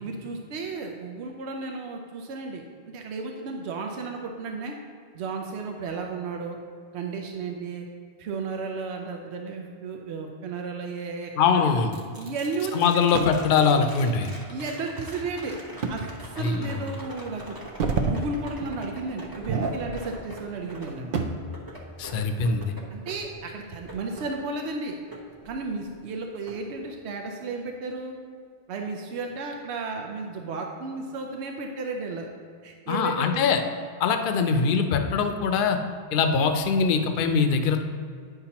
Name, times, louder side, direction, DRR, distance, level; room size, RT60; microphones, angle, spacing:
voice 1, 0.0-4.7 5.1-6.6 6.9-7.9 8.2-11.6 12.2-13.1 14.5-15.6 15.9-17.5 17.8-21.1 22.9-24.9 25.4-28.2 28.7-32.3 32.6-33.5, right 3 dB, 85° right, 2 dB, 0.9 m, -33 dB
voice 2, 11.4-11.9 12.7-14.3 16.4-16.8 22.0-22.7 32.9-33.6 34.0-35.8 36.1-37.8, left 5 dB, 60° left, 6 dB, 0.7 m, -22 dB
sound 1, 11.9-26.0 26.5-27.5 29.7-29.8, right 1 dB, 20° right, 0.9 m, -45 dB
sound 2, 13.1-13.5 15.8-16.0 16.6-16.7 17.5-18.2 18.6-18.8 19.3-20.2 20.6-21.5 23.0-24.2 24.6-24.7 25.4-25.8, right 4 dB, 60° right, 0.7 m, -30 dB
9.5 x 5.9 x 2.9 m, 2.2 s
omnidirectional pair, 1.1 m